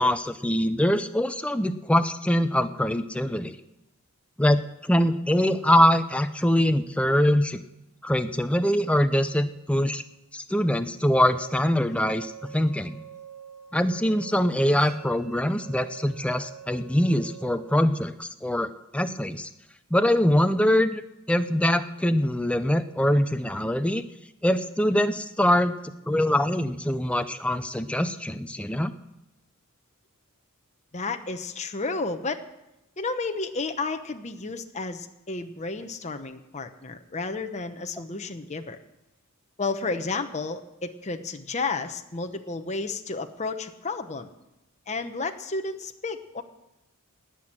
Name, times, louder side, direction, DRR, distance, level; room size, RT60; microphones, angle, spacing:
voice 1, 0.0-3.6 4.4-7.6 8.0-10.0 10.3-13.0 13.7-19.5 19.9-21.0 21.3-24.0 24.4-28.9, left 1 dB, 5° left, 9 dB, 0.6 m, -23 dB
sound 1, 11.2-17.8, right 8 dB, 15° right, 2.3 m, -46 dB
voice 2, 30.9-32.4 33.0-38.8 39.6-44.3 44.9-46.4, left 3 dB, 30° left, 6 dB, 0.9 m, -32 dB
18.5 x 6.2 x 8.9 m, 0.91 s
head